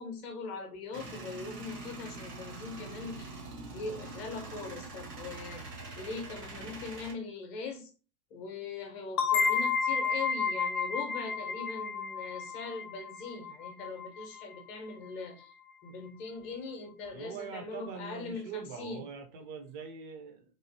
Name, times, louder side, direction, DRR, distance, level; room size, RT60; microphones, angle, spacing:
voice 1, 0.0-3.4 3.7-5.7 6.0-7.9 8.3-15.5 15.8-19.0, left 4 dB, 30° left, 0.7 m, -41 dB
Male speech man speaking / Vehicle / Engine starting, 0.9-7.1, right 2 dB, 80° right, 0.9 m, -44 dB
sound 1, 9.2-14.6, left 5 dB, 65° left, 0.7 m, -31 dB
voice 2, 17.1-20.4, right 6 dB, 30° right, 0.4 m, -43 dB
3.0 x 2.5 x 2.6 m
figure-of-eight pair, 95°, 47 cm